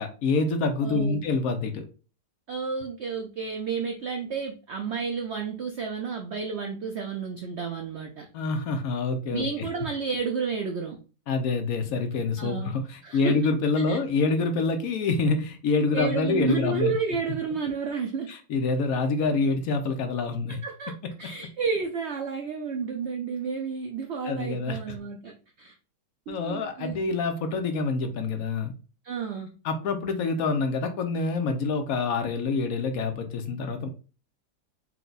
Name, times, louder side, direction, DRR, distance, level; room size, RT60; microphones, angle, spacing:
voice 1, 0.0-1.8 8.3-9.7 11.3-16.9 18.3-20.6 24.2-25.0 26.3-28.7 29.6-33.9, left 3 dB, 65° left, 6 dB, 1.0 m, -26 dB
voice 2, 0.8-1.2 2.5-8.3 9.3-11.0 12.4-12.8 13.0-13.4 13.9-14.0 15.9-18.3 20.5-20.9 21.2-25.7 26.3-27.0 29.0-29.5, right 5 dB, 80° right, 3 dB, 0.6 m, -31 dB
4.5 x 2.2 x 3.9 m, 0.35 s
omnidirectional pair, 1.8 m